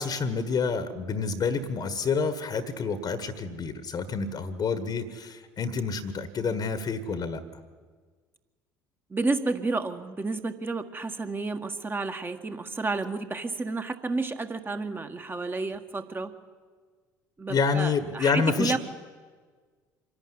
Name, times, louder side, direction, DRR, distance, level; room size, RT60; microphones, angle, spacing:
voice 1, 0.0-7.4 17.5-18.8, left 5 dB, 40° left, 12 dB, 1.6 m, -28 dB
voice 2, 9.1-16.3 17.4-18.8, right 3 dB, 20° right, 8 dB, 1.7 m, -31 dB
25.5 x 11.5 x 9.8 m, 1.5 s
figure-of-eight pair, 60°, 10 cm